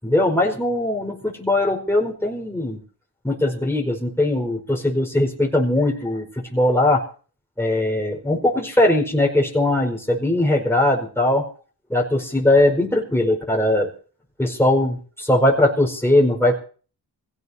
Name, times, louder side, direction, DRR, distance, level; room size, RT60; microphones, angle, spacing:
voice 1, 0.0-2.8 3.2-7.0 7.6-11.5 11.9-13.9 14.4-16.5, left 1 dB, 5° left, 0 dB, 5.0 m, -20 dB
27.0 x 17.0 x 2.8 m, 0.41 s
cardioid pair, 65°, 41 cm